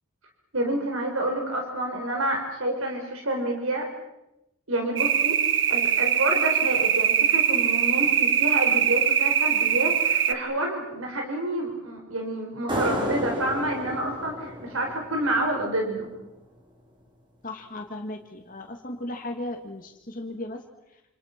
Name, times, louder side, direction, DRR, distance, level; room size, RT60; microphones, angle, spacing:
voice 1, 0.5-3.9 4.7-5.4 5.7-16.1, right 1 dB, 85° right, 2 dB, 4.8 m, -28 dB
sound 1, 5.0-10.3, right 8 dB, 60° right, 1.4 m, -22 dB
sound 2, 12.7-16.0, equal, 25° right, 4.6 m, -32 dB
voice 2, 17.4-20.6, left 1 dB, 40° left, 3 dB, 2.2 m, -36 dB
28.5 x 28.0 x 6.0 m, 0.90 s
head